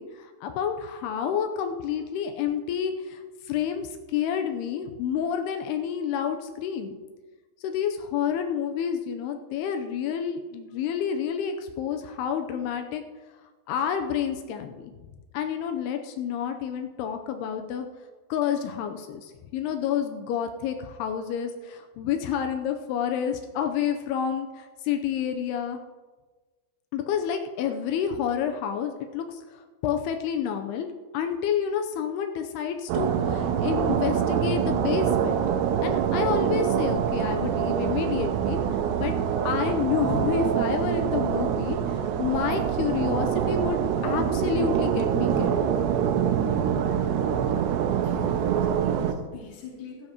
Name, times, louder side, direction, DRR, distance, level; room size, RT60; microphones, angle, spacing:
voice 1, 0.0-7.0 7.6-13.0 13.7-14.9 15.3-17.9 18.3-25.8 26.9-30.9 31.1-35.4 35.8-38.6 39.0-39.1 39.5-45.6, left 8 dB, 85° left, 5 dB, 2.7 m, -29 dB
sound 1, 32.9-49.1, right 8 dB, 90° right, 2.9 m, -25 dB
voice 2, 48.0-50.1, left 5 dB, 65° left, -4 dB, 4.2 m, -43 dB
15.5 x 14.5 x 2.9 m, 1.3 s
omnidirectional pair, 4.7 m